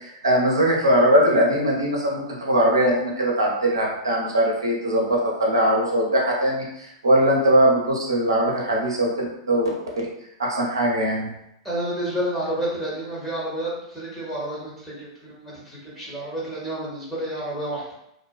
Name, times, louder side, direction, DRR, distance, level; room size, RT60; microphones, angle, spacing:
voice 1, 0.0-9.7 10.0-10.1 10.4-11.3, right 1 dB, 75° right, -2 dB, 0.6 m, -21 dB
voice 2, 11.6-17.8, right 1 dB, 5° left, -9 dB, 1.2 m, -30 dB
2.4 x 2.2 x 2.3 m, 0.80 s
figure-of-eight pair, 95°, 2 cm